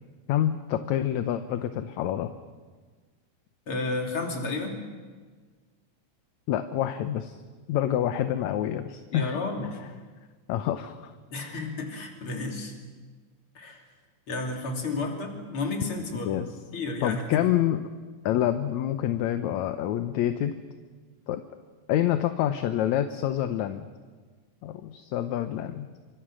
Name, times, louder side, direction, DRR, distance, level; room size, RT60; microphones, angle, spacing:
voice 1, 0.3-2.3 6.5-7.4 7.7-9.4 10.5-11.1 16.3-16.5 17.0-17.8 18.3-20.5 21.3-21.4 21.9-23.9 24.6-25.9, left 11 dB, 75° left, 9 dB, 2.1 m, -27 dB
voice 2, 3.7-4.8 9.1-9.8 11.3-12.7 13.6-13.8 14.3-16.4 16.7-17.5, left 3 dB, 45° left, 2 dB, 3.9 m, -32 dB
29.5 x 25.0 x 6.3 m, 1.5 s
omnidirectional pair, 3.5 m